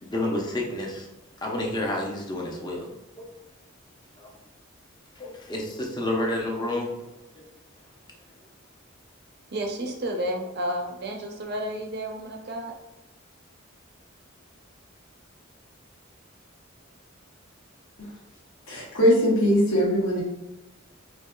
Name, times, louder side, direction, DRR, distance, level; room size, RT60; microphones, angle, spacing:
voice 1, 0.0-1.1 1.4-2.9 4.2-4.3 5.2-7.0, left 1 dB, 20° left, 0 dB, 0.6 m, -29 dB
voice 2, 9.5-12.7, right 1 dB, 55° right, 2 dB, 0.6 m, -31 dB
voice 3, 18.7-20.2, equal, 80° left, -6 dB, 1.1 m, -21 dB
4.6 x 2.8 x 2.3 m, 0.93 s
head